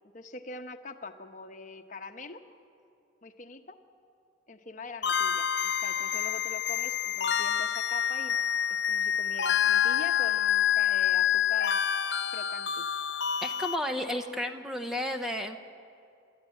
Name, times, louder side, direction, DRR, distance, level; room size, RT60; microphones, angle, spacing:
voice 1, 0.1-2.4 3.2-3.7 4.5-8.4 8.7-11.8 12.3-12.9, left 4 dB, 40° left, 7 dB, 0.9 m, -43 dB
sound 1, 5.0-13.8, left 9 dB, 55° left, 0.6 m, -27 dB
voice 2, 13.4-15.6, left 1 dB, ahead, 5 dB, 0.7 m, -32 dB
26.5 x 13.0 x 9.0 m, 2.5 s
head